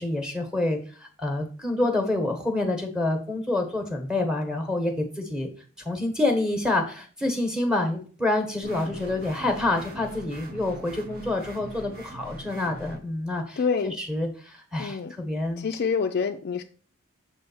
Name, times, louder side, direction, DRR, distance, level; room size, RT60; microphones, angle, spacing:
voice 1, 0.0-5.5 5.8-13.6 13.8-15.7, left 2 dB, 5° right, 4 dB, 1.1 m, -27 dB
sound 1, 8.6-13.0, right 2 dB, 45° right, 0.8 m, -42 dB
voice 2, 13.6-14.0 14.8-15.1 15.6-16.6, left 5 dB, 45° left, 7 dB, 0.4 m, -26 dB
6.8 x 3.4 x 5.4 m, 0.41 s
head